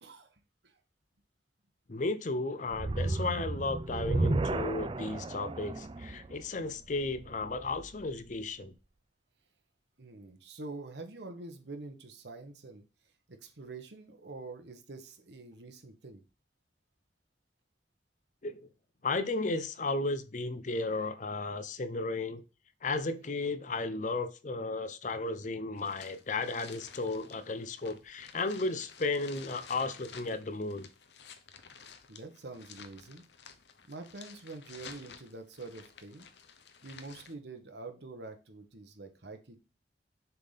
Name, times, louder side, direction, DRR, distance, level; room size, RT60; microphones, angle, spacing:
voice 1, 0.0-0.8 10.0-12.8 13.3-16.2 32.1-33.2 33.8-36.3 36.8-39.6, right 3 dB, 75° right, 1.2 m, -46 dB
voice 2, 1.9-8.7 18.4-18.6 19.0-22.4 22.8-30.9, left 3 dB, 45° left, 0.6 m, -34 dB
sound 1, 2.7-8.0, right 2 dB, 30° right, 0.4 m, -33 dB
sound 2, 25.8-37.3, left 6 dB, 75° left, 0.8 m, -53 dB
6.7 x 3.7 x 4.0 m
head